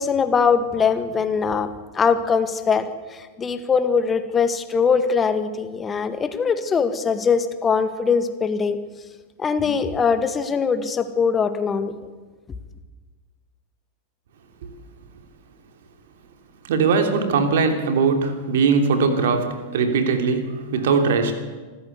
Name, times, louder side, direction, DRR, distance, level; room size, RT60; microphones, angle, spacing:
voice 1, 0.0-1.7 1.9-8.8 9.4-11.9, left 5 dB, 20° left, 10 dB, 1.8 m, -21 dB
voice 2, 16.6-21.4, right 5 dB, 60° right, 6 dB, 3.0 m, -20 dB
25.5 x 14.5 x 8.2 m, 1.4 s
figure-of-eight pair, 90°, 0 cm